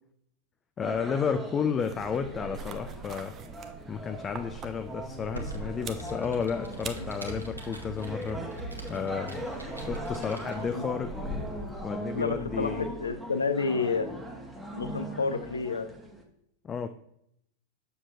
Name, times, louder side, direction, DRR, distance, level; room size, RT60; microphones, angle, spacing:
voice 1, 0.8-3.4 3.9-8.4 8.9-9.5 9.7-11.2 11.8-12.9 16.6-16.9, left 6 dB, 20° left, 9 dB, 0.4 m, -32 dB
sound 1, 0.8-16.2, right 1 dB, 5° right, 1.1 m, -40 dB
sound 2, 1.8-12.2, right 4 dB, 25° right, 0.6 m, -43 dB
Computer keyboard, 5.0-10.8, right 1 dB, 85° right, 1.1 m, -43 dB
voice 2, 12.1-14.1 14.7-15.9, left 4 dB, 75° left, 10 dB, 0.6 m, -30 dB
7.2 x 6.8 x 2.5 m, 0.74 s
figure-of-eight pair, 90°, 0 cm